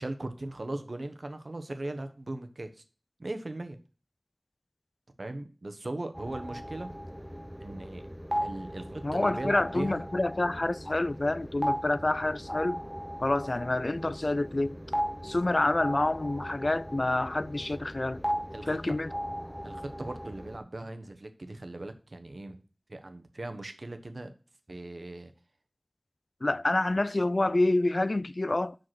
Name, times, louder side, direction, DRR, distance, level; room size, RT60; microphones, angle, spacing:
voice 1, 0.0-2.8 3.2-3.8 5.2-6.9 7.6-8.0 8.4-10.0 18.5-18.8 19.6-22.6 22.9-24.3 24.7-25.3, right 2 dB, 80° right, 1.0 m, -38 dB
sound 1, 6.1-20.6, equal, 5° right, 0.5 m, -37 dB
voice 2, 9.0-12.8 13.2-14.8 15.2-18.2 18.7-19.1 26.4-28.8, left 2 dB, 60° left, 0.3 m, -28 dB
5.9 x 5.3 x 5.8 m
wide cardioid pair, 45°, 0 cm